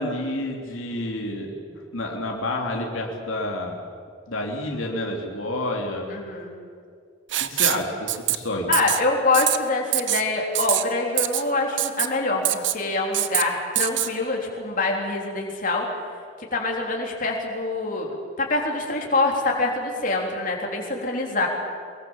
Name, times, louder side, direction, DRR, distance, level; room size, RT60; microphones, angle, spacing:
voice 1, 0.0-1.5 1.9-3.8 4.3-6.1 7.4-8.7, left 1 dB, 80° left, 0 dB, 3.0 m, -29 dB
voice 2, 6.1-6.5 8.7-15.9 16.5-21.5, left 3 dB, 40° left, 0 dB, 3.7 m, -25 dB
Writing, 7.3-7.8 8.1-8.4 8.7-9.0 9.3-9.6 9.9-10.2 10.5-10.8 11.2-11.4 11.8-12.1 12.4-12.8 13.1-13.4 13.8-14.1, right 14 dB, 65° right, 1.0 m, -23 dB
23.5 x 22.0 x 7.3 m, 2.2 s
head